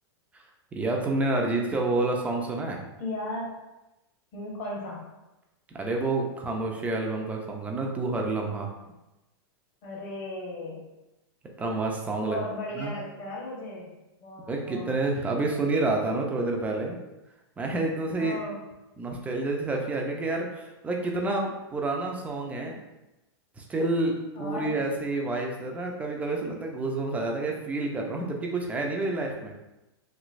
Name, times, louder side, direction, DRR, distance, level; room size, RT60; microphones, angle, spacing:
voice 1, 0.7-2.8 5.7-8.7 11.6-12.4 12.8-12.9 14.5-17.0 17.6-18.4 19.0-22.8 23.6-29.5, right 2 dB, 10° right, 0 dB, 0.4 m, -29 dB
voice 2, 3.0-3.5 4.3-5.0 9.8-10.8 12.2-13.9 14.2-15.0 18.2-18.6 24.3-24.8, left 2 dB, 45° left, -4 dB, 1.4 m, -36 dB
3.1 x 3.0 x 2.5 m, 0.98 s
supercardioid pair, 145°, 13 cm